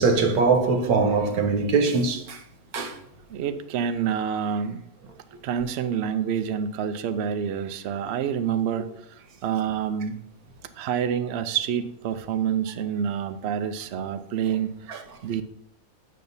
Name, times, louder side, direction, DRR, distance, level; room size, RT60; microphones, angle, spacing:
voice 1, 0.0-2.4 2.7-3.0 14.9-15.0, right 4 dB, 85° right, 1.4 m, -22 dB
voice 2, 3.3-4.8 5.4-10.2 10.8-14.9 15.2-15.4, right 8 dB, 65° right, 0.6 m, -27 dB
8.5 x 6.5 x 2.7 m
omnidirectional pair, 1.5 m